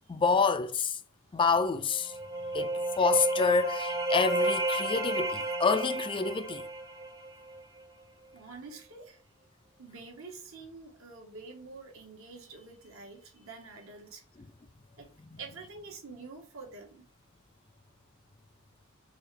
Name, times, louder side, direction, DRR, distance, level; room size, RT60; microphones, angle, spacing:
voice 1, 0.1-1.0 1.3-2.2 2.5-6.7 15.3-15.4, left 4 dB, 25° left, 0.3 m, -28 dB
sound 1, 1.9-7.6, right 2 dB, 15° right, 0.6 m, -32 dB
voice 2, 2.3-2.6 8.3-9.2 9.8-14.2 15.0-15.1 15.4-17.0, right 4 dB, 70° right, 1.5 m, -47 dB
4.7 x 3.3 x 3.3 m
head